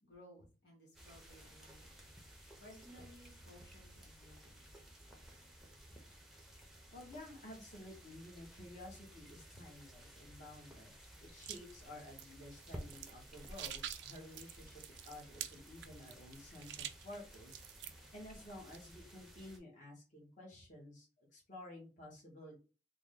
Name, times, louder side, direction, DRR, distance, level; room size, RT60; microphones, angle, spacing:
voice 1, 0.0-1.9 2.6-4.6, equal, 75° left, -1 dB, 1.2 m, -59 dB
sound 1, 0.9-19.6, equal, ahead, 0.7 m, -56 dB
voice 2, 6.9-14.8 15.0-22.6, left 1 dB, 45° left, -3 dB, 1.2 m, -53 dB
sound 2, 11.4-18.1 18.4-18.8, right 11 dB, 75° right, 0.4 m, -48 dB
3.5 x 2.1 x 3.7 m, 0.34 s
head